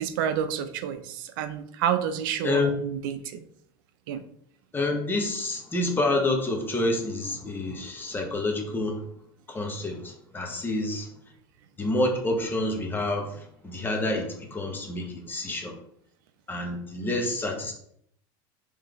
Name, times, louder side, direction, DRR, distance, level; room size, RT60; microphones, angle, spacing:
voice 1, 0.0-3.4 4.1-4.2 17.0-17.1, right 9 dB, 80° right, 10 dB, 0.4 m, -29 dB
voice 2, 4.7-9.0 9.5-11.1 11.8-15.8 16.5-17.7, left 2 dB, 20° left, 2 dB, 0.9 m, -28 dB
3.8 x 3.2 x 3.1 m, 0.68 s
supercardioid pair, 110°, 11 cm